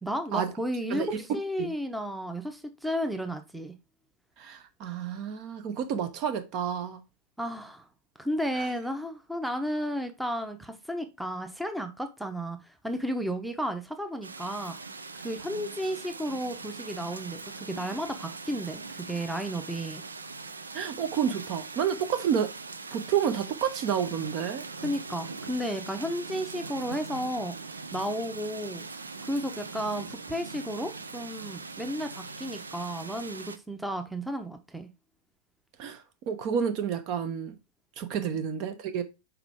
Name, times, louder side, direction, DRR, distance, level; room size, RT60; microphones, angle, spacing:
voice 1, 0.0-3.7 7.4-7.9 8.2-14.8 15.2-20.0 24.8-27.6 27.9-28.9 29.2-34.9 38.2-38.4, equal, ahead, 0.8 m, -33 dB
voice 2, 4.4-7.0 8.5-8.7 20.7-22.5 22.9-24.6 35.8-37.6 38.0-39.0, right 8 dB, 40° right, 0.9 m, -30 dB
sound 1, 14.2-33.6, right 4 dB, 75° right, 0.5 m, -41 dB
6.0 x 4.5 x 3.5 m
figure-of-eight pair, 90°, 0 cm